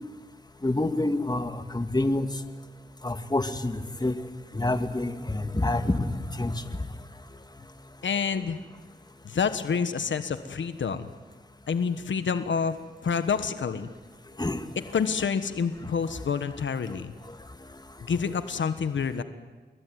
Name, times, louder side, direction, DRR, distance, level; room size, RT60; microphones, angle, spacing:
voice 1, 0.6-2.3 3.0-4.2 4.5-6.1 6.4-6.5 14.4-14.6, left 2 dB, 20° left, 8 dB, 2.3 m, -27 dB
voice 2, 8.0-8.6 9.2-11.1 11.7-13.9 14.9-17.1 18.0-19.2, left 6 dB, 80° left, 10 dB, 1.4 m, -28 dB
29.0 x 21.5 x 9.5 m, 1.4 s
cardioid pair, 55°, 19 cm